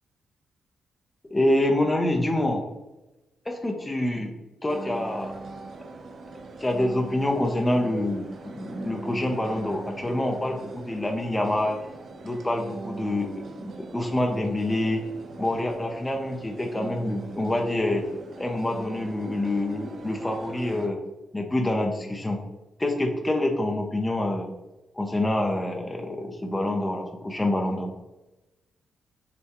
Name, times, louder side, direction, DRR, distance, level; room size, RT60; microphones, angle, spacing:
voice 1, 1.3-2.6 3.5-4.3 4.6-5.3 6.6-11.8 12.2-13.3 13.6-15.0 15.4-18.0 18.4-21.0 21.3-22.4 22.8-24.5 25.0-27.9, left 1 dB, 15° left, 2 dB, 0.6 m, -26 dB
sound 1, 4.7-20.9, right 3 dB, 55° right, 0.4 m, -41 dB
6.7 x 2.3 x 2.9 m, 1.0 s
cardioid pair, 125°, 0 cm